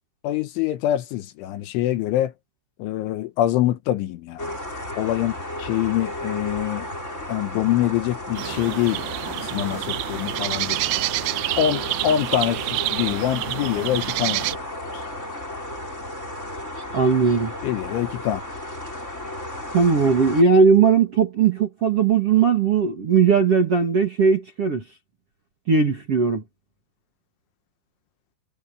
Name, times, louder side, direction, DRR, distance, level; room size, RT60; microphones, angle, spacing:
voice 1, 0.2-2.3 2.8-4.5 5.0-6.9 7.3-11.0 11.6-14.6 14.9-15.0 17.6-18.4, left 12 dB, 75° left, 3.3 m, -25 dB
sound 1, 4.4-20.4, left 1 dB, 15° left, 6.5 m, -34 dB
sound 2, 8.4-14.6, right 20 dB, 85° right, 2.6 m, -28 dB
voice 2, 16.9-17.5 19.7-24.8 25.7-26.4, right 5 dB, 45° right, 2.0 m, -18 dB
omnidirectional pair, 6.0 m